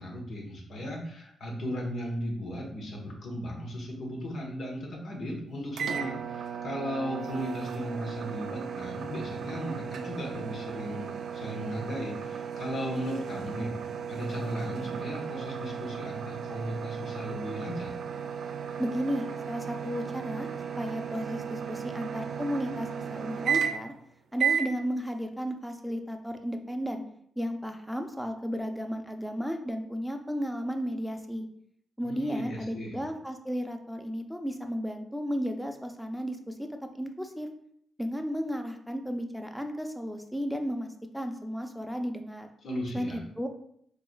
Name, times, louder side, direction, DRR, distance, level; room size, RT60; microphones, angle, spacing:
voice 1, 0.0-13.7 14.1-17.9 32.0-33.0 42.6-43.2, equal, 65° left, -1 dB, 1.2 m, -36 dB
sound 1, 5.8-24.0 24.4-24.7, right 7 dB, 70° right, 0.3 m, -35 dB
voice 2, 18.8-20.5 20.8-23.9 24.3-27.0 27.4-31.5 32.0-37.5 38.0-40.9 41.1-42.5 42.9-43.5, equal, ahead, 5 dB, 0.6 m, -34 dB
4.6 x 3.2 x 2.3 m, 0.68 s
cardioid pair, 65°, 0 cm